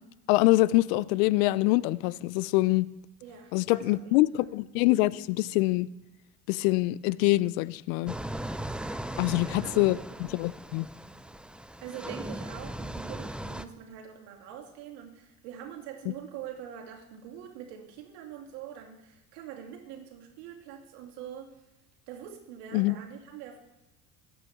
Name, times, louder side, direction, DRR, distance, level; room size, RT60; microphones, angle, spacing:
voice 1, 0.3-2.9 3.5-5.9 6.5-8.1 9.2-10.0 10.3-10.9 22.7-22.9, left 19 dB, 65° left, 0.6 m, -24 dB
voice 2, 3.2-4.6 9.2-10.0 11.8-21.6 22.1-23.6, right 9 dB, 65° right, 2.8 m, -44 dB
sound 1, 8.1-13.6, right 1 dB, ahead, 0.5 m, -38 dB
20.5 x 8.6 x 3.6 m
hypercardioid pair, 70°, 44 cm